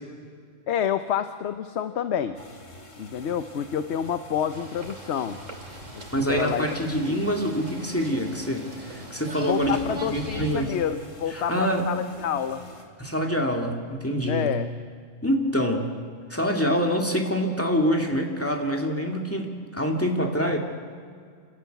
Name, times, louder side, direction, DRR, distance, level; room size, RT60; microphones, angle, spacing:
voice 1, 0.7-2.4 3.0-5.4 5.9-6.6 7.0-7.3 9.4-12.7 14.3-14.7, left 9 dB, 65° left, 10 dB, 1.0 m, -28 dB
sound 1, 2.3-12.8, left 1 dB, 80° left, 2.7 m, -47 dB
sound 2, 4.5-10.8, right 2 dB, 80° right, 2.8 m, -40 dB
voice 2, 6.1-9.8 10.1-10.7 11.5-11.8 13.0-14.5 15.2-15.9 16.3-20.6, equal, 10° left, 1 dB, 2.3 m, -25 dB
30.0 x 13.5 x 9.2 m, 2.1 s
omnidirectional pair, 1.3 m